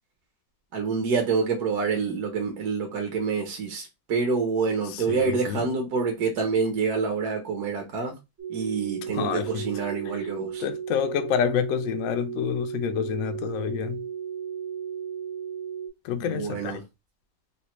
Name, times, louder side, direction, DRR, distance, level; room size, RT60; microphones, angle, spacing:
voice 1, 0.7-8.1 8.5-10.6 16.1-16.8, right 5 dB, 65° right, 1.3 m, -27 dB
voice 2, 4.9-5.6 9.1-9.6 10.6-14.0 16.0-16.8, left 9 dB, 75° left, 0.7 m, -28 dB
sound 1, 8.4-15.9, right 8 dB, 45° right, 1.1 m, -35 dB
4.1 x 2.1 x 2.9 m
omnidirectional pair, 1.9 m